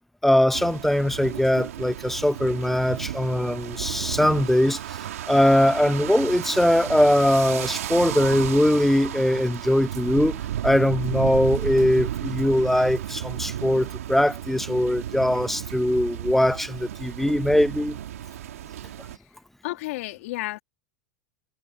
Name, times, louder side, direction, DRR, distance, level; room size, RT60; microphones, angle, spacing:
voice 1, 0.2-18.0, left 1 dB, 5° left, 0.4 m, -21 dB
sound 1, 0.5-19.2, right 11 dB, 90° right, 2.5 m, -33 dB
voice 2, 19.6-20.6, left 18 dB, 70° left, 3.0 m, -31 dB
supercardioid pair, 120°, 8 cm